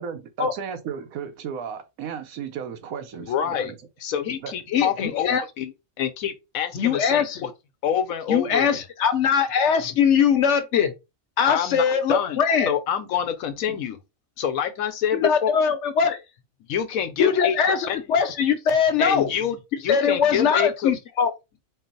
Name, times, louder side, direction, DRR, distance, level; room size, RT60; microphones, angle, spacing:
voice 1, 0.0-3.8 4.4-4.5, right 7 dB, 85° right, 1.2 m, -34 dB
voice 2, 3.2-3.7 4.0-7.5 7.8-8.9 11.5-12.4 12.7-14.0 14.4-15.5 16.7-18.0 19.0-20.9, left 8 dB, 80° left, 1.1 m, -27 dB
voice 3, 4.7-5.4 6.7-7.5 8.3-10.9 11.4-12.7 15.1-16.2 17.2-19.3 19.9-21.3, left 7 dB, 65° left, 0.9 m, -21 dB
4.4 x 2.0 x 3.9 m
omnidirectional pair, 1.4 m